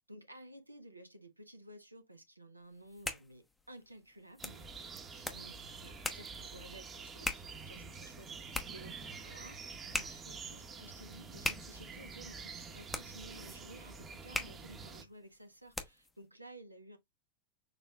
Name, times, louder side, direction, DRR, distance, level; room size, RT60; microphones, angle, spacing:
voice 1, 0.0-9.0 9.2-17.0, right 1 dB, 85° right, 0.9 m, -54 dB
sound 1, 2.7-16.2, left 2 dB, 10° left, 0.9 m, -43 dB
sound 2, 4.4-15.0, right 4 dB, 20° right, 1.1 m, -48 dB
6.5 x 3.1 x 2.3 m
figure-of-eight pair, 90°, 0 cm